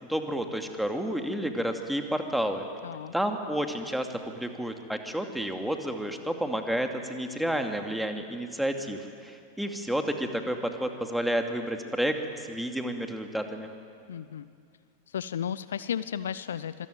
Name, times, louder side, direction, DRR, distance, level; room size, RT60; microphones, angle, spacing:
voice 1, 0.0-2.7 3.1-13.7, equal, ahead, 5 dB, 2.4 m, -30 dB
voice 2, 2.8-3.1 14.1-14.5 15.1-16.9, left 8 dB, 65° left, 16 dB, 0.7 m, -34 dB
26.0 x 23.0 x 9.4 m, 2.3 s
figure-of-eight pair, 90°, 0 cm